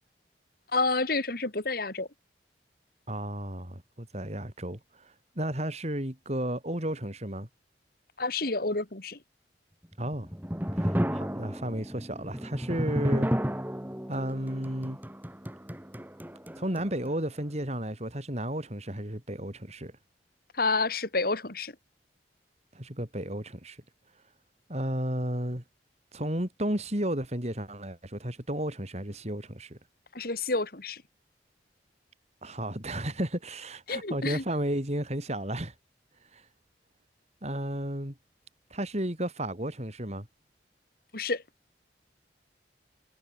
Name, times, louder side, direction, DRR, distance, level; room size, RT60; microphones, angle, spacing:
voice 1, 0.7-2.1 8.2-9.2 20.6-21.7 30.1-31.0 33.9-34.4 41.1-41.4, left 3 dB, 55° left, 2.6 m, -29 dB
voice 2, 3.1-7.5 10.0-10.3 10.7-13.3 14.1-15.0 16.6-19.9 22.7-23.8 24.7-25.6 26.1-29.8 32.4-35.7 36.3-36.5 37.4-38.2 38.7-40.3, right 1 dB, 40° right, 4.5 m, -33 dB
sound 1, 9.9-17.1, equal, 10° right, 2.7 m, -32 dB
head